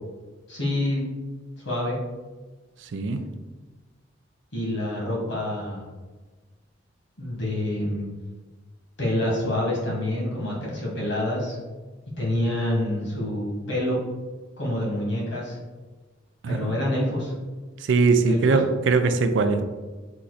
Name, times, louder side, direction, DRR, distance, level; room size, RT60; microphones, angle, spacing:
voice 1, 0.5-1.0 1.6-2.0 4.5-5.8 7.2-8.1 9.0-11.6 12.2-14.0 14.6-15.6 16.5-17.3 18.3-18.6, left 1 dB, 70° left, -3 dB, 1.5 m, -27 dB
voice 2, 2.8-3.3 16.4-16.8 17.8-19.6, right 4 dB, 75° right, 8 dB, 0.4 m, -21 dB
4.3 x 2.5 x 4.0 m, 1.3 s
head